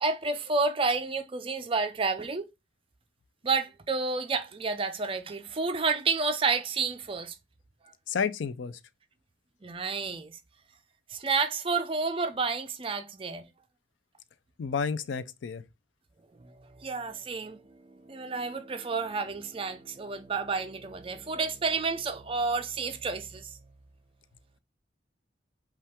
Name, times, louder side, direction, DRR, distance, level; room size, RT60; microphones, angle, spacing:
voice 1, 0.0-2.5 3.4-7.4 9.6-10.4 11.1-13.4 16.4-23.6, right 4 dB, 30° right, 0.5 m, -30 dB
voice 2, 8.1-8.8 14.6-15.6, left 6 dB, 80° left, 0.4 m, -31 dB
5.5 x 2.4 x 3.5 m
head